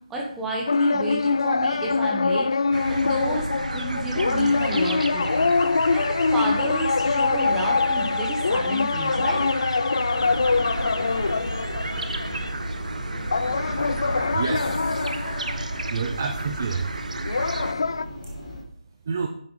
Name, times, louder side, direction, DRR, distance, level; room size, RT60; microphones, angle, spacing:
voice 1, 0.1-2.5 2.9-3.4 3.7-5.5 5.9-9.4, right 1 dB, 5° right, -2 dB, 1.0 m, -30 dB
sound 1, 0.7-12.5 13.3-16.3 17.2-18.1, left 4 dB, 40° left, 0.4 m, -24 dB
sound 2, 2.7-17.7, right 3 dB, 85° right, 0.9 m, -32 dB
sound 3, 10.1-18.6, equal, 15° left, 2.5 m, -37 dB
voice 2, 14.3-15.1 15.9-16.9 19.1-19.3, right 5 dB, 20° right, 4 dB, 0.6 m, -29 dB
9.7 x 7.5 x 5.3 m, 0.65 s
hypercardioid pair, 180°, 4 cm